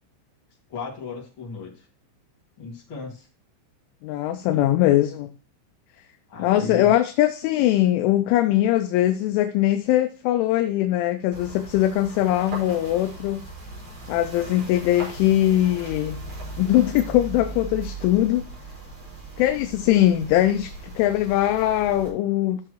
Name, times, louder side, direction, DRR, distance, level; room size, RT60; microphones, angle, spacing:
voice 1, 0.7-1.8 2.6-3.3 4.6-4.7 6.3-6.9, left 5 dB, 55° left, -3 dB, 1.3 m, -35 dB
voice 2, 4.0-5.3 6.4-13.4 14.1-16.2 16.6-18.4 19.4-22.6, left 13 dB, 80° left, 8 dB, 2.9 m, -21 dB
sound 1, 11.3-22.1, right 2 dB, 30° right, 5.0 m, -38 dB
13.0 x 6.7 x 3.0 m, 0.39 s
omnidirectional pair, 5.8 m